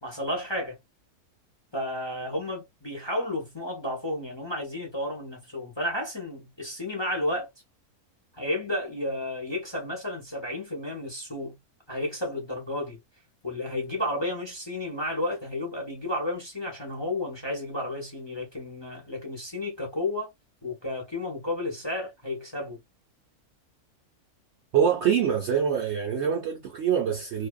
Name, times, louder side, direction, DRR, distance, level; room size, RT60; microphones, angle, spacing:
voice 1, 0.0-0.8 1.7-7.5 8.3-11.6 11.9-13.0 13.4-20.3 20.6-22.8, left 1 dB, 25° left, 0.7 m, -32 dB
voice 2, 24.7-27.5, right 8 dB, 65° right, 0.7 m, -25 dB
2.6 x 2.3 x 2.3 m
omnidirectional pair, 1.6 m